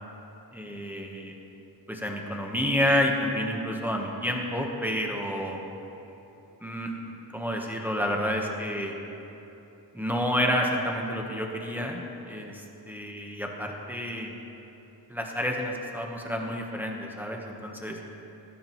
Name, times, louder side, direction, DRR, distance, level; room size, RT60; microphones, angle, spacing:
voice 1, 0.5-1.4 1.9-5.6 6.6-6.9 7.3-9.0 9.9-14.3 15.1-18.0, equal, 5° right, 0 dB, 1.0 m, -29 dB
18.0 x 15.0 x 3.1 m, 3.0 s
wide cardioid pair, 170°, 42 cm